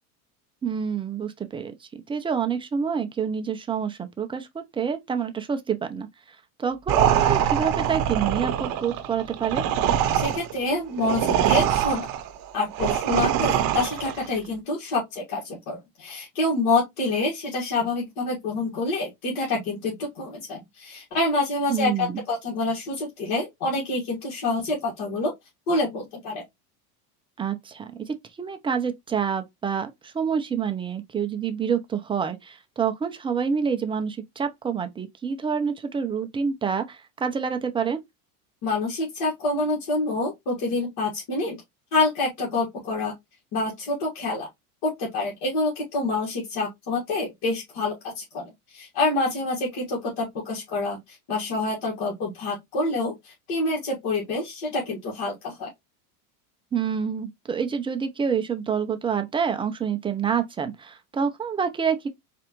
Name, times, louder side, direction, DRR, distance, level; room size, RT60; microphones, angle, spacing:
voice 1, 0.6-6.1 6.6-9.6 21.7-22.2 27.4-38.0 56.7-62.1, right 7 dB, 15° right, 0.3 m, -27 dB
sound 1, 6.9-14.3, right 10 dB, 50° right, 0.8 m, -24 dB
voice 2, 10.1-12.0 12.5-25.3 25.7-26.4 38.6-41.6 41.9-43.1 43.5-44.5 44.8-55.7, left 2 dB, 60° left, 1.7 m, -27 dB
4.2 x 2.5 x 2.9 m
supercardioid pair, 100°, 45 cm